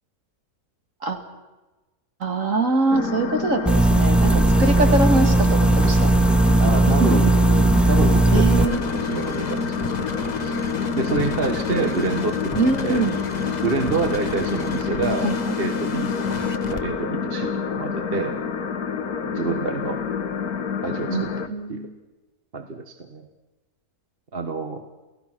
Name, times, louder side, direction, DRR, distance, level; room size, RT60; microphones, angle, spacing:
voice 1, 2.2-6.1 6.9-7.2 7.8-7.9 8.3-8.8 12.6-13.2 15.2-15.3 21.1-21.9, right 2 dB, 55° right, 5 dB, 2.6 m, -23 dB
sound 1, 2.9-21.5, left 5 dB, 70° left, 1.8 m, -27 dB
sound 2, 3.7-8.7, right 2 dB, ahead, 0.5 m, -17 dB
voice 2, 4.3-4.6 6.6-9.6 10.0-10.1 10.4-10.6 11.0-13.1 13.6-15.3 15.6-16.1 16.7-18.4 19.3-20.0 20.8-21.9 22.5-23.3 24.3-24.8, right 4 dB, 35° right, 6 dB, 1.6 m, -28 dB
sound 3, 8.5-16.8, left 4 dB, 30° left, 1.3 m, -34 dB
29.0 x 17.0 x 6.2 m, 1.1 s
omnidirectional pair, 1.7 m